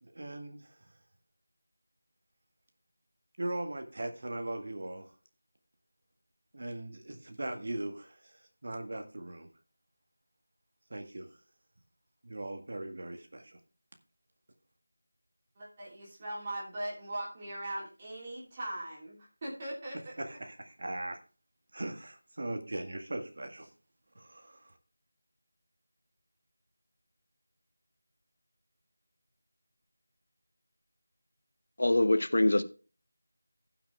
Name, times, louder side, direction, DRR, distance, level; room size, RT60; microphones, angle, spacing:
voice 1, 0.0-0.8 3.4-5.1 6.5-9.5 10.9-11.4 12.2-13.6 20.2-21.2 21.7-23.7 24.2-24.8, right 1 dB, 50° right, 1.7 m, -39 dB
voice 2, 15.5-20.0 20.3-20.4, right 1 dB, 25° right, 3.2 m, -40 dB
voice 3, 31.8-32.6, left 1 dB, 65° left, 1.1 m, -24 dB
16.0 x 5.9 x 3.4 m
figure-of-eight pair, 170°, 0 cm